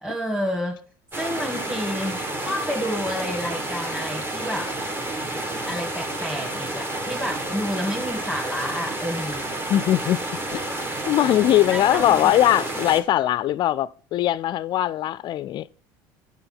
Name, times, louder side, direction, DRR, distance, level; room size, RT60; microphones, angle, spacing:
voice 1, 0.0-0.7 1.2-4.7 5.7-9.5 11.6-12.3, equal, 5° right, 1.9 m, -30 dB
sound 1, 1.1-13.0, right 1 dB, 20° right, 1.4 m, -30 dB
sound 2, 9.3-9.6 10.5-11.0 12.0-12.5, right 1 dB, 90° right, 4.5 m, -47 dB
voice 2, 9.7-10.2 10.5-10.6 11.1-15.7, left 13 dB, 50° left, 0.4 m, -20 dB
6.9 x 6.3 x 5.6 m
hypercardioid pair, 80°, 10 cm